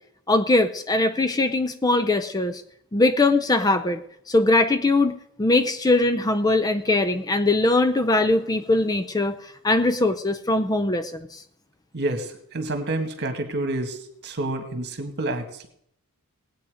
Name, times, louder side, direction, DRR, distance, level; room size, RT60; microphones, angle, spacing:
voice 1, 0.3-2.6 2.9-4.0 4.3-11.4, left 2 dB, 15° left, 10 dB, 0.5 m, -21 dB
voice 2, 11.9-15.7, right 2 dB, 50° right, 6 dB, 1.9 m, -29 dB
19.0 x 8.7 x 5.0 m, 0.71 s
head